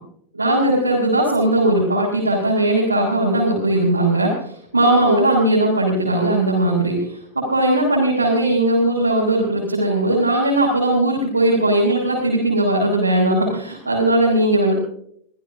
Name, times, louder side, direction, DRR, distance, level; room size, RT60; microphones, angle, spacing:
voice 1, 0.4-4.4 4.7-7.0 7.3-14.7, right 1 dB, 80° right, -6 dB, 4.5 m, -18 dB
24.0 x 15.5 x 2.7 m, 0.64 s
figure-of-eight pair, 90°, 0 cm